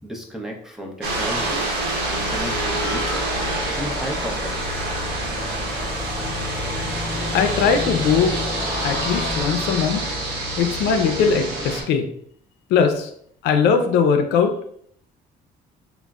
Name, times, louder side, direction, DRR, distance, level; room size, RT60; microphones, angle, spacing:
voice 1, 0.0-1.6 2.0-3.3 3.7-4.6, equal, 5° right, 0 dB, 0.6 m, -33 dB
sound 1, 1.0-11.8, right 1 dB, 75° right, 1.0 m, -26 dB
sound 2, 2.3-9.4, left 3 dB, 65° left, 0.8 m, -37 dB
voice 2, 7.3-8.4 8.8-10.0 10.6-12.0 12.7-13.1 13.4-14.5, left 6 dB, 80° left, 6 dB, 0.4 m, -20 dB
3.7 x 2.0 x 2.3 m, 0.64 s
cardioid pair, 110°, 17 cm